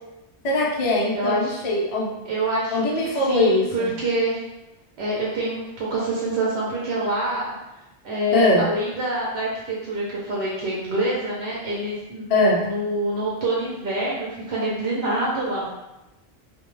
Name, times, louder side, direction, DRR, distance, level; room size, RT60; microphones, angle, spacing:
voice 1, 0.4-2.2 2.7-3.9 8.3-8.7 12.3-12.7, left 2 dB, 50° left, -3 dB, 0.4 m, -21 dB
voice 2, 1.1-1.6 2.2-4.4 5.0-7.5 8.0-12.2 12.6-15.7, right 1 dB, 75° right, -5 dB, 0.9 m, -26 dB
2.2 x 2.1 x 3.0 m, 0.97 s
omnidirectional pair, 1.1 m